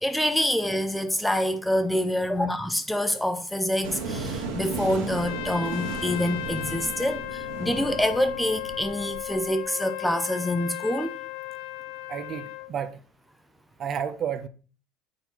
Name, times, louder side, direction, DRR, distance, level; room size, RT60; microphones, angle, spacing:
voice 1, 0.0-11.2, left 1 dB, 5° left, 0.7 m, -26 dB
sound 1, 3.8-9.5, right 3 dB, 85° right, 1.9 m, -35 dB
Trumpet, 5.1-12.7, left 15 dB, 75° left, 0.4 m, -36 dB
voice 2, 12.1-12.9 13.8-14.5, right 8 dB, 45° right, 0.9 m, -31 dB
8.0 x 4.3 x 4.5 m
supercardioid pair, 100°, 0 cm